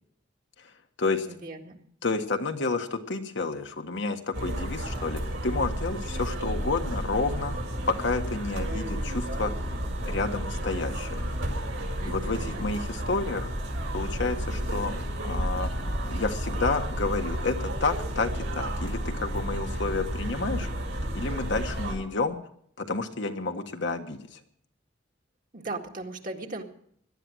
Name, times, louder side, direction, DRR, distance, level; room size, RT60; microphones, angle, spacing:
voice 1, 1.3-1.8 12.0-12.6 25.5-26.6, right 2 dB, 45° right, 2 dB, 2.0 m, -38 dB
voice 2, 2.0-7.6 7.9-9.5 10.1-11.3 12.0-13.5 13.9-14.9 15.2-20.7 21.1-22.4 22.8-24.3, left 3 dB, 70° left, 5 dB, 1.5 m, -30 dB
sound 1, 4.3-21.9, equal, 85° right, 4.9 m, -31 dB
18.0 x 12.0 x 6.3 m, 0.66 s
head